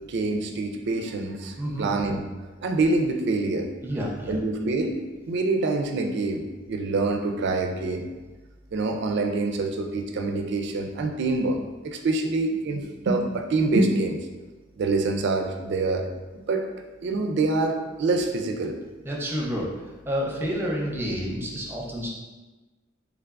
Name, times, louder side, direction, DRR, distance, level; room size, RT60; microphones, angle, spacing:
voice 1, 0.1-2.2 2.6-3.7 4.3-8.1 8.7-14.2 14.8-16.0 16.3-16.6 17.0-18.8, right 3 dB, 60° right, 4 dB, 0.4 m, -26 dB
voice 2, 1.6-1.9 3.8-4.4 19.0-22.1, equal, 10° right, -2 dB, 0.6 m, -29 dB
3.4 x 3.3 x 2.4 m, 1.2 s
head